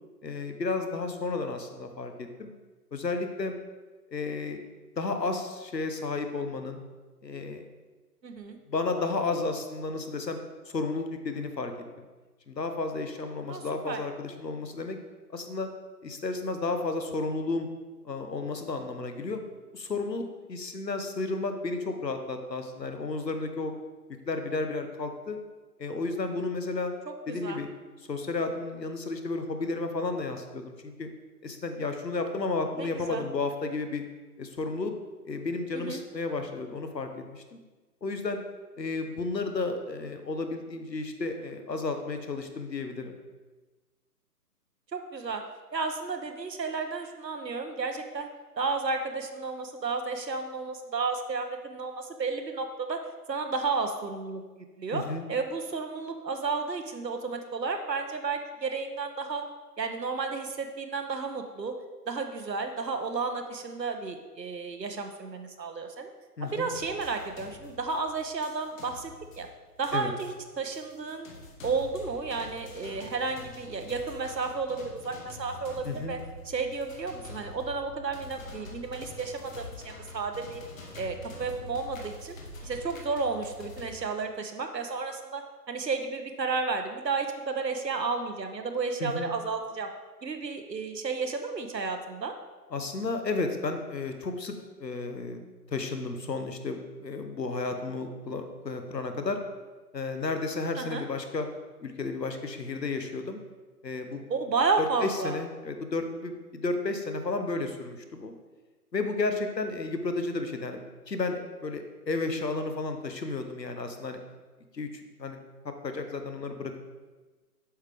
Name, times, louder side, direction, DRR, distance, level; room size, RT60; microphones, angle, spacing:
voice 1, 0.2-2.5 2.9-3.6 4.1-4.6 5.0-6.8 7.2-7.6 8.7-10.4 10.7-11.7 12.0-12.1 12.5-15.0 15.3-15.7 16.0-17.7 18.0-19.4 19.7-23.7 24.3-25.4 25.8-26.9 27.3-27.7 28.1-31.1 31.4-34.0 34.4-34.9 35.2-37.6 38.0-38.4 38.8-43.1 54.9-55.2 66.4-66.7 69.9-70.1 75.8-76.1 89.0-89.3 92.7-95.4 95.7-99.4 99.9-101.5 101.8-103.4 103.8-104.2 105.0-108.3 108.9-110.8 111.1-114.2 114.7-115.4 115.6-116.8, left 3 dB, 90° left, 6 dB, 1.0 m, -32 dB
voice 2, 8.2-8.6 13.5-14.0 27.3-27.6 32.8-33.2 35.7-36.0 44.9-45.4 45.7-48.3 48.6-53.0 53.3-54.4 54.8-59.4 59.8-61.8 62.1-66.1 66.4-69.1 69.4-69.5 69.8-71.3 71.6-76.2 76.5-80.6 81.0-82.4 82.6-89.9 90.2-92.3 100.8-101.0 104.3-105.4, right 4 dB, 90° right, 5 dB, 0.9 m, -32 dB
sound 1, 66.7-84.0, left 2 dB, 55° left, 1.3 m, -46 dB
7.9 x 5.7 x 3.3 m, 1.3 s
figure-of-eight pair, 130°, 48 cm